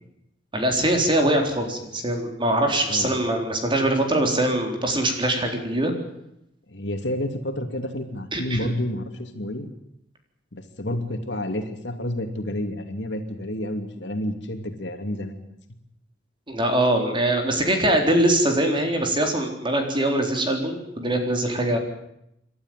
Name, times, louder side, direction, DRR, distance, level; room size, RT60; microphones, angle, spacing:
voice 1, 0.5-5.9 8.3-8.6 16.5-21.8, right 1 dB, 25° right, 3 dB, 4.0 m, -22 dB
voice 2, 6.7-9.7 10.5-15.5, left 1 dB, 70° left, 6 dB, 2.8 m, -30 dB
28.0 x 12.5 x 9.3 m, 0.80 s
head